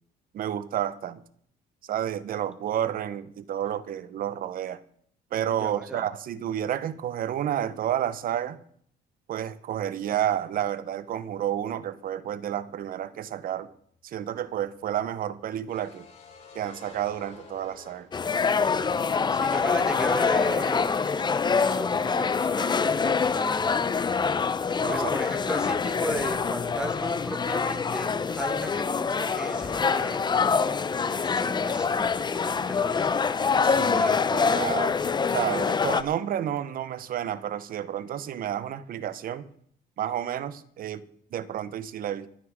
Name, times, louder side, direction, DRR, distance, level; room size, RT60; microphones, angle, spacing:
voice 1, 0.3-1.2 1.8-4.8 5.3-8.6 9.3-13.7 14.0-16.1 16.5-18.1 24.8-25.1 33.6-35.0 35.3-39.5 40.0-41.0 41.3-42.3, right 10 dB, 60° right, 14 dB, 1.1 m, -30 dB
voice 2, 5.6-6.1 19.3-23.8 24.9-30.7 31.2-33.2, right 1 dB, 5° right, 6 dB, 1.9 m, -36 dB
sound 1, 14.3-18.7 19.0-19.1 21.3-21.7 22.0-22.1, left 4 dB, 45° left, 4.9 m, -50 dB
sound 2, 18.1-36.0, left 5 dB, 25° left, 0.8 m, -25 dB
25.5 x 9.9 x 3.7 m, 0.63 s
cardioid pair, 110°, 17 cm